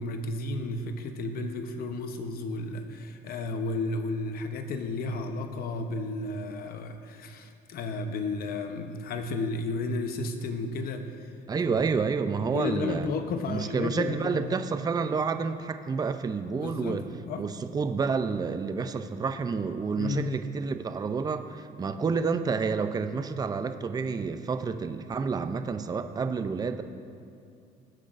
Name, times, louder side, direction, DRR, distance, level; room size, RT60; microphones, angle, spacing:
voice 1, 0.0-11.3 12.5-14.6 16.5-17.5 20.0-20.3, left 3 dB, 60° left, 7 dB, 0.9 m, -33 dB
voice 2, 11.5-13.1 13.5-17.0 17.4-26.8, right 5 dB, 25° right, 9 dB, 0.5 m, -29 dB
18.0 x 7.9 x 2.6 m, 2.5 s
cardioid pair, 110°, 17 cm